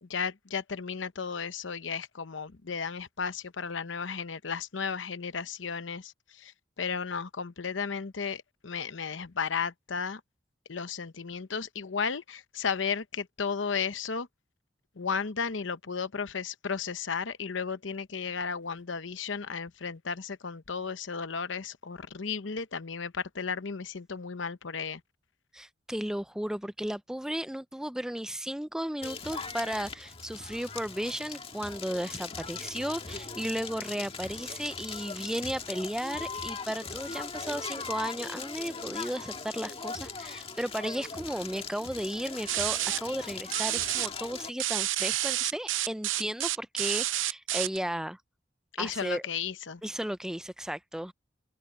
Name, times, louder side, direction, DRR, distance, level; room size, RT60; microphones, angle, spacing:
voice 1, 0.0-10.2 10.7-14.3 15.0-25.0 48.7-49.8, left 6 dB, 75° left, 0.9 m, -34 dB
voice 2, 25.5-48.2 48.8-49.2 49.8-51.1, equal, 5° right, 0.4 m, -34 dB
Crackle, 29.0-44.5, left 5 dB, 30° left, 1.8 m, -40 dB
sound 1, 42.5-43.0 43.5-44.1 44.6-47.8, right 14 dB, 80° right, 0.7 m, -29 dB
open air
head